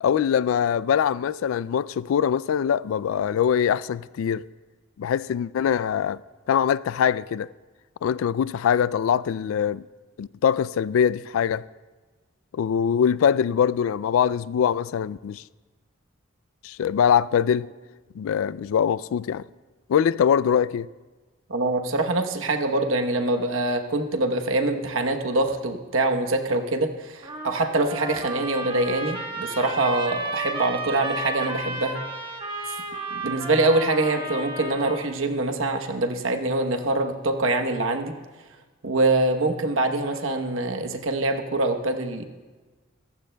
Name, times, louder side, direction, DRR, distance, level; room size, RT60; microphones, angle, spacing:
voice 1, 0.0-4.5 5.0-6.2 6.5-7.5 8.0-9.9 10.2-11.6 12.5-15.4 16.6-17.7 18.2-19.5 19.9-20.9, left 8 dB, 85° left, 0.3 m, -23 dB
voice 2, 21.5-32.0 33.1-38.1 38.8-42.2, right 2 dB, 80° right, 1.0 m, -24 dB
Trumpet, 27.2-35.1, right 1 dB, 25° right, 1.3 m, -33 dB
25.5 x 14.5 x 2.3 m
head